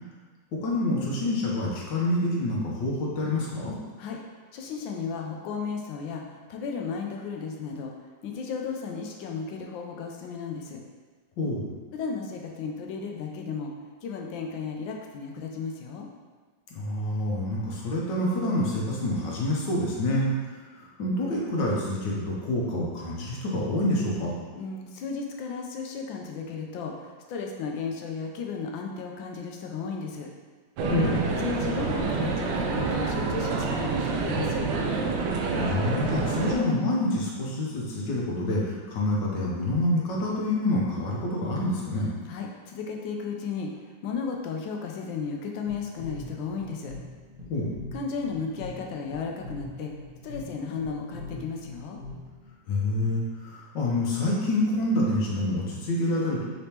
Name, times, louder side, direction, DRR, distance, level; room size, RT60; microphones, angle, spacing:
voice 1, 0.6-3.8 11.4-11.7 16.7-20.3 21.0-24.3 30.9-31.3 35.5-42.1 47.5-47.7 52.7-56.4, left 1 dB, 75° left, -4 dB, 1.5 m, -27 dB
voice 2, 4.5-7.9 8.2-10.8 11.9-13.7 14.0-16.1 24.6-30.3 31.4-34.9 42.3-43.7 44.0-46.9 47.9-49.9 50.2-52.0, left 5 dB, 90° left, 1 dB, 1.4 m, -34 dB
sound 1, 30.8-36.6, right 4 dB, 85° right, 1.3 m, -27 dB
sound 2, 45.7-52.5, left 2 dB, 25° right, 0.6 m, -43 dB
5.1 x 3.4 x 2.9 m, 1.4 s
omnidirectional pair, 2.0 m